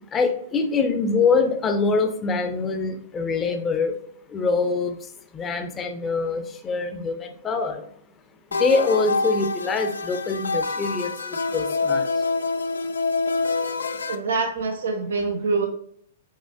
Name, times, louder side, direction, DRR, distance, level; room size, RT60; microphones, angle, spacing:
voice 1, 0.0-3.9 4.3-4.9 5.3-7.8 8.6-11.1 11.5-12.0, left 4 dB, 20° left, 6 dB, 0.6 m, -24 dB
sound 1, 8.5-14.1, left 3 dB, 85° left, 0.3 m, -26 dB
voice 2, 14.1-15.7, right 4 dB, 75° right, 4 dB, 0.5 m, -25 dB
5.5 x 2.8 x 2.7 m, 0.65 s
hypercardioid pair, 115°, 0 cm